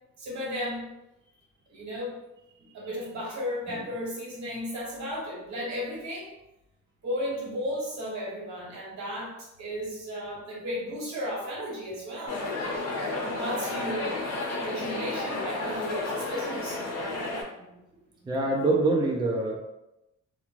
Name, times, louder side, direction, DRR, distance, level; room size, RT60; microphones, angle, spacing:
voice 1, 0.2-0.9 1.7-2.1 2.7-6.3 7.0-12.4 13.2-14.1 14.5-16.8, equal, 70° right, -4 dB, 1.3 m, -34 dB
sound 1, 12.3-17.4, left 2 dB, 55° left, 0.8 m, -32 dB
voice 2, 18.2-19.6, right 2 dB, 15° right, -1 dB, 0.4 m, -25 dB
2.4 x 2.2 x 3.0 m, 0.90 s
cardioid pair, 90°, 30 cm